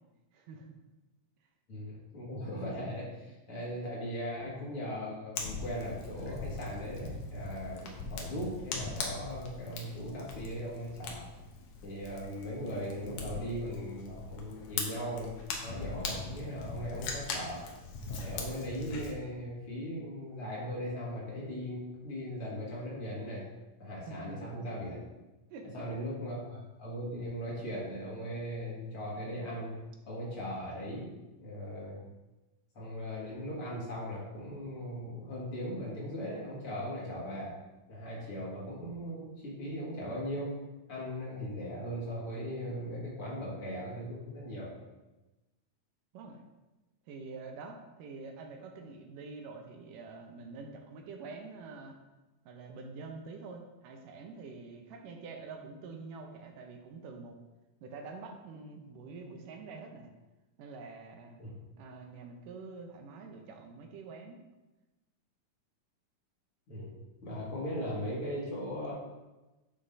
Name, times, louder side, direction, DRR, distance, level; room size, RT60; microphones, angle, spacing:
voice 1, 0.3-0.7 24.1-24.4 25.5-25.9 46.1-46.4 47.1-52.0 52.5-57.4 57.8-60.1 60.6-61.4 61.8-64.4, right 4 dB, 80° right, 3 dB, 2.4 m, -46 dB
voice 2, 1.7-11.3 11.8-17.6 18.1-23.5 23.8-25.0 25.7-29.8 30.1-31.1 31.4-32.0 32.7-37.6 37.9-40.5 40.9-44.7 61.4-61.5 66.7-66.9 67.2-68.9, equal, 45° left, -6 dB, 2.5 m, -38 dB
Fire, 5.4-19.1, left 4 dB, 70° left, 2.1 m, -40 dB
9.6 x 6.6 x 2.7 m, 1.1 s
omnidirectional pair, 3.8 m